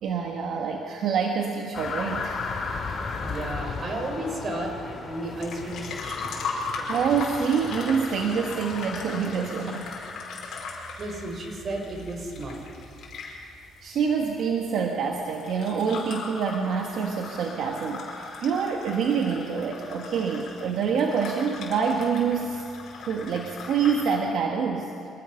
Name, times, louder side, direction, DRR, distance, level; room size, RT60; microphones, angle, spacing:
voice 1, 0.0-2.4 6.9-9.9 13.8-22.6 22.9-24.9, right 6 dB, 60° right, 1 dB, 1.5 m, -26 dB
sound 1, 1.7-10.3, left 4 dB, 35° left, 2.5 m, -36 dB
voice 2, 3.2-6.3 11.0-12.6, right 1 dB, 35° right, 3 dB, 4.3 m, -33 dB
sound 2, 5.2-24.2, left 4 dB, 55° left, 4.9 m, -38 dB
25.5 x 19.5 x 5.8 m, 2.5 s
cardioid pair, 145°, 0 cm